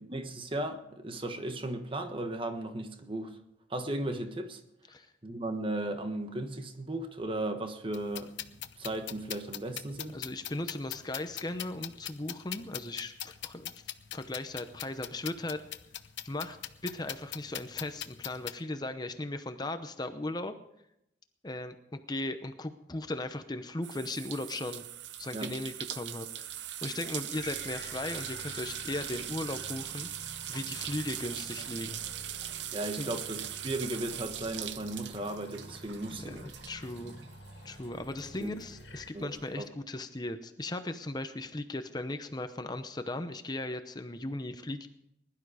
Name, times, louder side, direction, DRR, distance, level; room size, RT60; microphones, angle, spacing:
voice 1, 0.1-3.4 3.7-4.6 5.2-8.4 8.8-10.2 25.3-25.5 32.7-36.5 38.4-38.5 39.1-39.6, right 1 dB, 30° right, 1.3 m, -36 dB
sound 1, 7.9-18.5, left 12 dB, 90° left, 0.8 m, -42 dB
voice 2, 10.1-13.7 14.1-15.6 16.2-16.6 16.8-20.5 21.4-24.8 25.2-26.5 26.8-30.1 30.5-32.0 33.0-33.1 36.2-37.1 37.6-44.9, left 2 dB, 25° left, 0.8 m, -37 dB
sound 2, 23.8-37.9 38.2-39.4, right 11 dB, 80° right, 0.7 m, -41 dB
sound 3, 27.3-39.1, left 1 dB, 70° left, 2.1 m, -49 dB
20.5 x 11.5 x 5.0 m
head